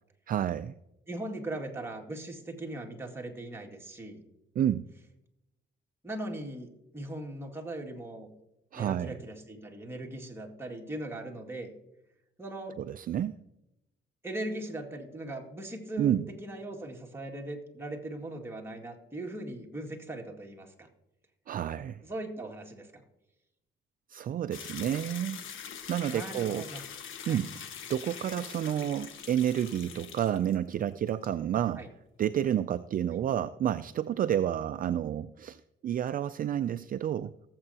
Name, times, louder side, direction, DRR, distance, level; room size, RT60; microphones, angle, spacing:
voice 1, 0.3-0.7 4.6-4.8 8.7-9.2 12.8-13.4 16.0-16.2 21.5-22.0 24.1-25.4 25.9-26.6 27.3-27.5 27.9-31.8 32.2-37.3, right 10 dB, 45° right, 12 dB, 0.4 m, -30 dB
voice 2, 1.1-4.2 6.0-8.3 8.7-11.7 12.4-12.8 14.2-16.2 16.4-20.9 22.0-23.0 26.1-26.8 27.2-27.4 31.8-31.9, right 1 dB, 10° right, 1 dB, 2.1 m, -39 dB
sound 1, 24.5-30.8 31.1-31.3, left 8 dB, 80° left, 1.3 m, -43 dB
18.5 x 7.7 x 2.8 m, 0.90 s
cardioid pair, 90°, 20 cm